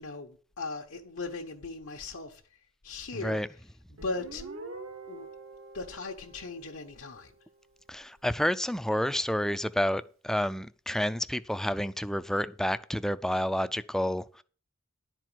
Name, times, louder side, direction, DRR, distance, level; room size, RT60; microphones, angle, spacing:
voice 1, 0.0-2.4 2.8-3.4 3.9-4.4 5.1-5.3 5.7-7.3, left 3 dB, 80° left, 1.1 m, -38 dB
Guitar, 4.0-7.4, right 3 dB, 80° right, 1.7 m, -46 dB
voice 2, 7.9-14.4, equal, ahead, 0.4 m, -29 dB
11.0 x 4.6 x 7.8 m
head